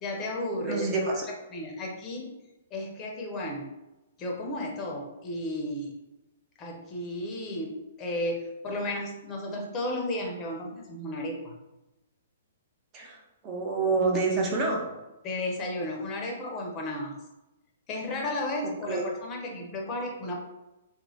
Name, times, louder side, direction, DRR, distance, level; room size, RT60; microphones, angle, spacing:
voice 1, 0.0-1.2 1.5-2.3 2.7-3.7 4.2-5.9 6.6-11.5 15.2-17.2 17.9-20.4, left 1 dB, 25° left, 0 dB, 0.6 m, -33 dB
voice 2, 0.6-1.2 12.9-13.2 13.4-14.9 18.9-19.0, right 3 dB, 30° right, 0 dB, 0.7 m, -27 dB
3.0 x 2.1 x 2.6 m, 0.99 s
hypercardioid pair, 120°, 0 cm